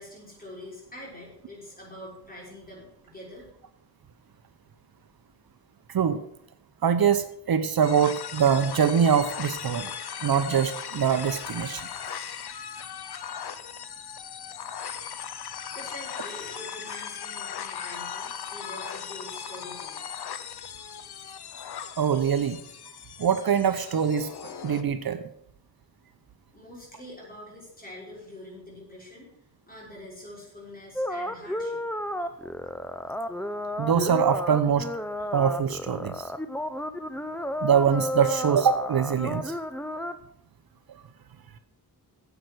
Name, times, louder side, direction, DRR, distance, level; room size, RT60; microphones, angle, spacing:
voice 1, 0.0-3.5 15.7-20.1 26.5-29.3 29.6-32.3, left 1 dB, 20° left, -4 dB, 6.0 m, -45 dB
voice 2, 6.8-9.9 10.2-11.9 22.0-22.6 23.2-25.2 33.8-34.9 35.3-36.2 37.6-39.5, right 7 dB, 65° right, 10 dB, 0.9 m, -23 dB
sound 1, 7.8-24.8, left 8 dB, 75° left, 0.8 m, -38 dB
sound 2, 31.0-40.2, left 1 dB, 5° left, 0.7 m, -32 dB
10.0 x 8.0 x 6.3 m, 0.72 s
wide cardioid pair, 100°, 38 cm